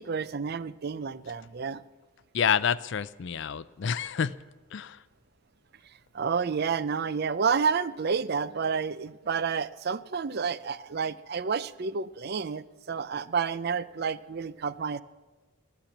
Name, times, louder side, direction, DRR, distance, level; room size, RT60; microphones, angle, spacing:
voice 1, 0.0-1.8 6.1-15.0, right 5 dB, 45° right, 16 dB, 0.4 m, -30 dB
voice 2, 2.3-4.3 4.7-5.0, left 7 dB, 55° left, 17 dB, 0.4 m, -28 dB
15.5 x 12.0 x 7.2 m, 1.2 s
head